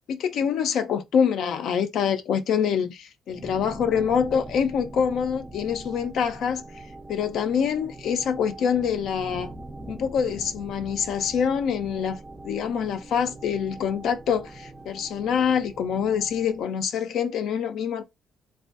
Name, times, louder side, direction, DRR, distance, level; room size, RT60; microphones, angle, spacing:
voice 1, 0.1-6.6 7.1-9.5 9.9-18.0, left 7 dB, 75° left, 0.4 m, -25 dB
sound 1, 3.3-16.6, right 2 dB, 20° right, 0.4 m, -42 dB
2.4 x 2.3 x 2.4 m
cardioid pair, 90°, 0 cm